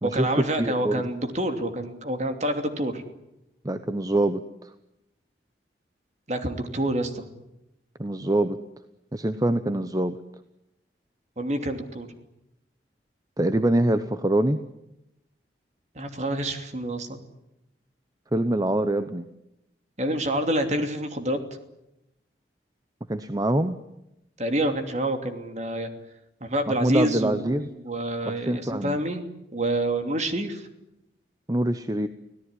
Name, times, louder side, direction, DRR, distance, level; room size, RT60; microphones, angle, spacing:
voice 1, 0.0-3.0 6.3-7.3 11.4-12.1 15.9-17.2 20.0-21.4 24.4-25.9 26.4-29.2 29.5-30.7, right 1 dB, 40° right, 6 dB, 2.9 m, -27 dB
voice 2, 0.6-1.0 3.6-4.7 8.0-8.6 9.1-10.2 13.4-14.6 18.3-19.2 23.1-23.8 26.8-27.7 28.3-29.0 31.5-32.1, right 1 dB, 20° right, 10 dB, 0.9 m, -24 dB
25.5 x 17.5 x 9.9 m, 0.89 s
head